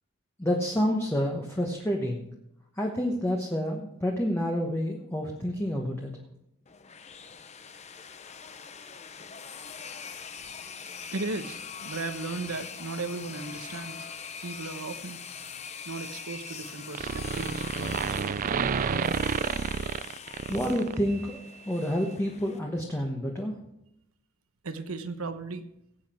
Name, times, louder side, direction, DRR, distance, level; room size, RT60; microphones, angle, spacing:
voice 1, 0.4-2.2 2.8-6.1 20.5-23.6, equal, 10° left, 0 dB, 1.2 m, -29 dB
sound 1, 6.7-22.6, left 6 dB, 30° left, 0.7 m, -43 dB
voice 2, 11.1-14.1 14.4-15.2 15.8-18.7 24.6-25.6, right 3 dB, 80° right, 10 dB, 1.0 m, -36 dB
sound 2, 16.0-16.7 16.9-21.4, right 5 dB, 40° right, 0.4 m, -30 dB
18.0 x 8.3 x 4.4 m, 0.81 s
head